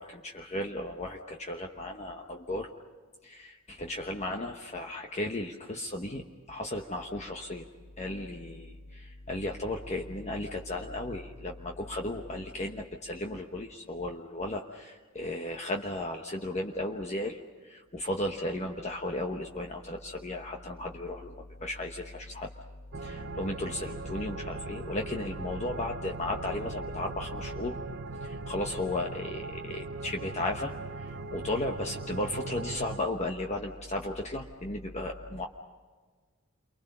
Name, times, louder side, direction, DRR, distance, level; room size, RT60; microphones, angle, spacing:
voice 1, 0.2-2.7 3.2-7.7 8.0-17.4 17.6-22.5 23.0-27.8 28.2-30.7 31.0-35.4, left 1 dB, 30° left, 2 dB, 1.1 m, -35 dB
sound 1, 22.9-33.0, right 3 dB, 50° right, 0.8 m, -39 dB
29.5 x 24.0 x 5.5 m, 1.5 s
head